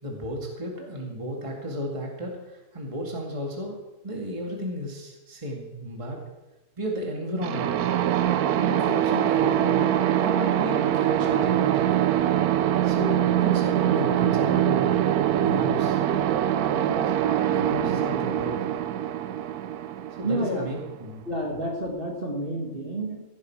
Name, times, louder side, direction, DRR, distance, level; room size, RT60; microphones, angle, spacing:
voice 1, 0.0-3.8 4.0-6.2 6.8-7.8 8.6-11.9 12.8-16.0 16.7-17.1 17.5-18.7 20.2-21.2, equal, 20° right, -1 dB, 2.1 m, -33 dB
sound 1, 7.4-21.1, right 11 dB, 80° right, 1.2 m, -23 dB
voice 2, 20.2-20.7 21.3-23.2, right 1 dB, 35° right, 0 dB, 2.4 m, -29 dB
17.0 x 11.0 x 4.7 m, 1.0 s
omnidirectional pair, 1.6 m